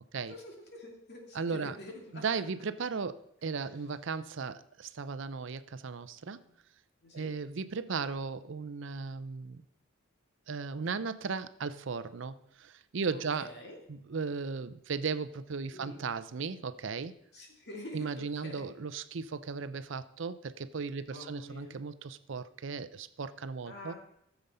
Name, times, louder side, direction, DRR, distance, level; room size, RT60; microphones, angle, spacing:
voice 1, 0.3-2.2 6.4-6.5 7.0-7.3 13.1-13.8 15.7-16.0 17.3-18.7 21.1-21.8 23.7-24.0, left 1 dB, 55° left, 1 dB, 2.5 m, -47 dB
voice 2, 1.3-1.8 2.1-6.4 7.1-9.6 10.5-13.5 13.9-17.1 17.9-23.9, right 5 dB, 60° right, 13 dB, 0.5 m, -36 dB
14.0 x 7.0 x 5.4 m, 0.75 s
head